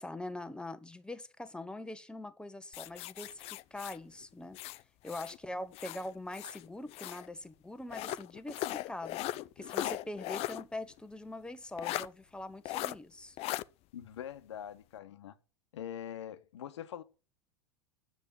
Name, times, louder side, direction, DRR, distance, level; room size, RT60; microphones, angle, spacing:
voice 1, 0.0-4.6 5.0-9.2 9.6-13.4, left 2 dB, 5° left, 1.2 m, -43 dB
sound 1, 2.7-5.4 5.7-7.3 7.9-10.6 11.0-11.1 11.8-12.1 12.7-13.0 13.4-13.6, left 16 dB, 40° left, 0.5 m, -38 dB
voice 2, 13.9-15.4 15.7-17.0, left 10 dB, 70° left, 1.2 m, -43 dB
10.0 x 7.4 x 7.1 m
figure-of-eight pair, 80°, 15 cm